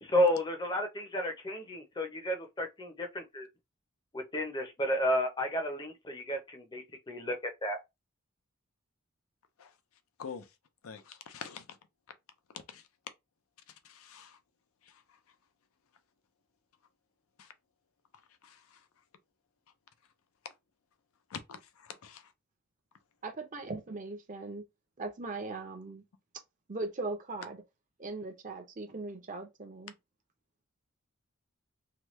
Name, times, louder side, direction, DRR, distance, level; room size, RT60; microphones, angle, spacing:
voice 1, 0.0-3.5 4.1-7.8, left 1 dB, 20° left, 0.6 m, -32 dB
voice 2, 10.8-11.6 12.7-12.8 14.0-14.3 21.3-21.4 22.0-22.2, left 6 dB, 80° left, 0.5 m, -43 dB
voice 3, 23.2-24.6 25.0-26.0 26.7-27.6 28.0-29.9, right 3 dB, 35° right, 0.6 m, -39 dB
2.9 x 2.2 x 3.1 m
head